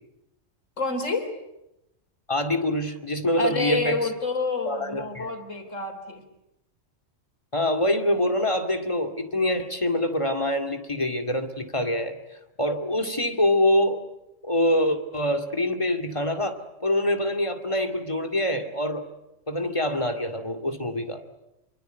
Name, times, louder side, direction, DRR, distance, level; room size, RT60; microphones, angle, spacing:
voice 1, 0.8-1.3 3.4-6.2, left 3 dB, 85° left, 7 dB, 4.0 m, -28 dB
voice 2, 2.3-4.1 4.7-5.3 7.5-12.2 12.6-14.0 14.4-19.1 19.5-21.2, left 1 dB, 25° left, 5 dB, 2.4 m, -25 dB
27.0 x 24.0 x 8.1 m, 0.89 s
omnidirectional pair, 1.3 m